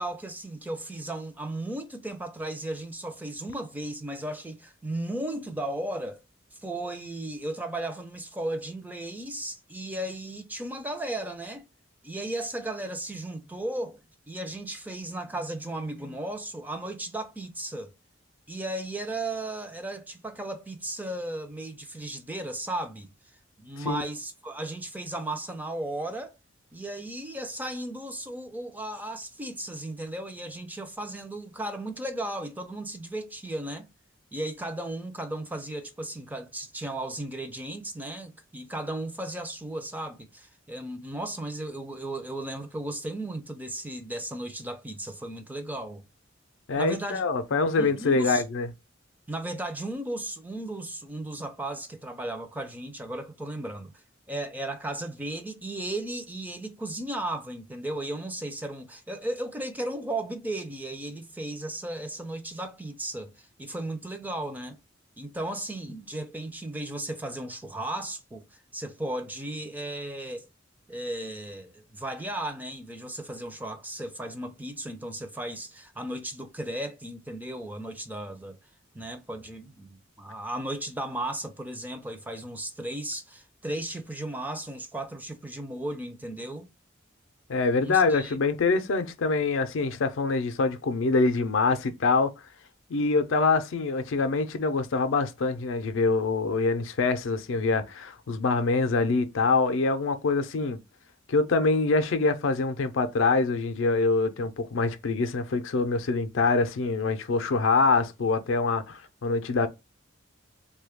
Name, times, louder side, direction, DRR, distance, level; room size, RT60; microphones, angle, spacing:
voice 1, 0.0-6.2 6.5-11.7 12.0-14.0 14.3-17.9 18.5-23.1 23.6-26.3 26.7-33.9 34.3-46.0 46.8-47.2 47.5-48.4 49.3-53.9 54.3-64.8 65.2-70.5 70.9-78.6 78.9-86.7 87.8-88.4, right 1 dB, 10° right, 0.4 m, -35 dB
voice 2, 46.7-48.7 87.5-92.3 92.9-100.8 101.3-109.7, left 3 dB, 70° left, 0.5 m, -25 dB
3.1 x 2.2 x 3.4 m
head